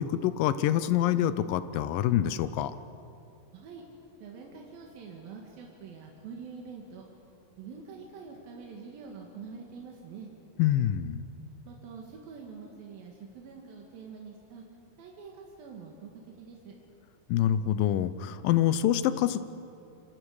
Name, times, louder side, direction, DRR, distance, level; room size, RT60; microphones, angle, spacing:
voice 1, 0.0-2.7 10.6-11.3 17.3-19.4, left 11 dB, 80° left, 13 dB, 2.4 m, -26 dB
voice 2, 3.5-3.8 4.2-7.0 7.6-10.3 11.7-14.6 15.0-16.1 16.4-16.7, right 5 dB, 90° right, -1 dB, 3.5 m, -45 dB
27.0 x 26.0 x 4.9 m, 2.7 s
omnidirectional pair, 4.0 m